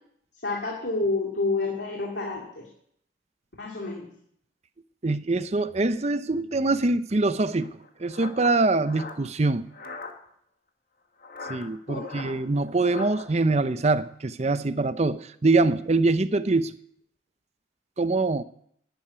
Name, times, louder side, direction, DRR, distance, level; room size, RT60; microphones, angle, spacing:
voice 1, 0.4-2.7 3.6-4.1 11.9-12.3, left 3 dB, 70° left, 2.6 m, -29 dB
voice 2, 5.0-9.7 11.5-16.7 18.0-18.4, right 3 dB, 35° right, 0.6 m, -24 dB
sound 1, 7.6-10.1 11.2-13.2, left 3 dB, 50° left, 1.6 m, -40 dB
11.5 x 8.8 x 9.6 m
head